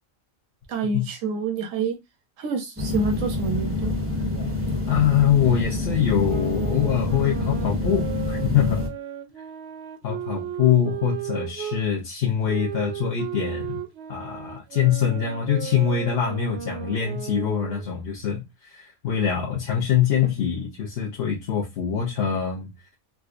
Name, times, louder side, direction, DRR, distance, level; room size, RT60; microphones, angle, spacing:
voice 1, 0.7-2.0 2.4-3.9, right 4 dB, 85° right, 1.0 m, -27 dB
sound 1, 2.8-8.9, left 2 dB, 15° right, 0.4 m, -27 dB
voice 2, 4.9-8.8 10.0-13.8 14.1-22.7, left 8 dB, 55° left, 0.8 m, -24 dB
sound 2, 6.2-11.8 12.5-17.9, right 10 dB, 65° right, 0.7 m, -35 dB
3.7 x 2.2 x 2.4 m
omnidirectional pair, 1.3 m